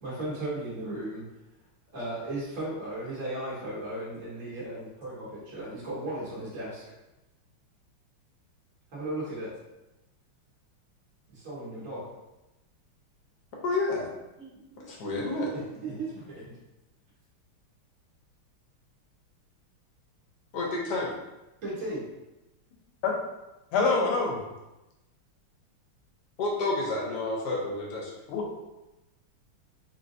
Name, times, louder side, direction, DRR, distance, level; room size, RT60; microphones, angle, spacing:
voice 1, 0.0-1.3 1.9-6.8 8.9-9.5 11.3-12.1 14.4-14.8 15.3-16.6 21.6-22.1, right 1 dB, 40° right, -9 dB, 1.9 m, -36 dB
voice 2, 13.6-14.1 14.8-15.5 20.5-21.1 26.4-28.1, left 2 dB, 60° left, -2 dB, 1.3 m, -30 dB
voice 3, 23.7-24.4 28.3-28.5, left 4 dB, 80° left, 0 dB, 1.7 m, -25 dB
4.2 x 3.6 x 2.7 m, 0.98 s
omnidirectional pair, 2.3 m